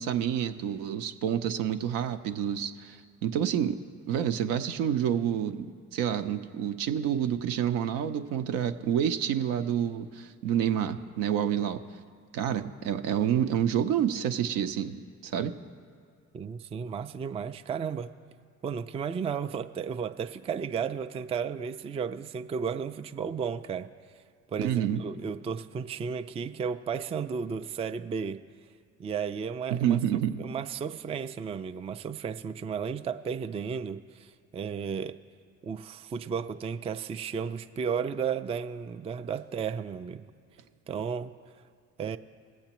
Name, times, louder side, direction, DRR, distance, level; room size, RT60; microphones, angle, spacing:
voice 1, 0.0-3.8 4.1-5.7 5.9-11.8 12.3-15.5 24.6-25.0 29.7-30.5, right 9 dB, 70° right, 9 dB, 0.6 m, -28 dB
voice 2, 16.3-18.1 18.6-23.9 24.5-28.4 29.0-30.0 30.4-35.2 35.6-40.3 40.9-41.3 42.0-42.2, right 6 dB, 20° right, 9 dB, 0.3 m, -33 dB
20.5 x 7.9 x 3.0 m, 2.2 s
hypercardioid pair, 55°, 35 cm